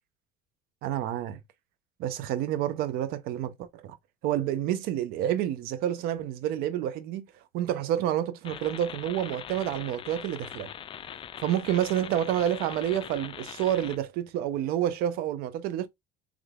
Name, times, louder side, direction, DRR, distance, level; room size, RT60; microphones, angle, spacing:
voice 1, 0.8-1.4 2.0-4.0 4.2-7.3 7.5-10.7 11.4-15.9, right 11 dB, 65° right, 0.6 m, -29 dB
sound 1, 8.4-14.0, left 9 dB, 30° left, 0.3 m, -42 dB
3.4 x 3.3 x 2.3 m
hypercardioid pair, 80°, 17 cm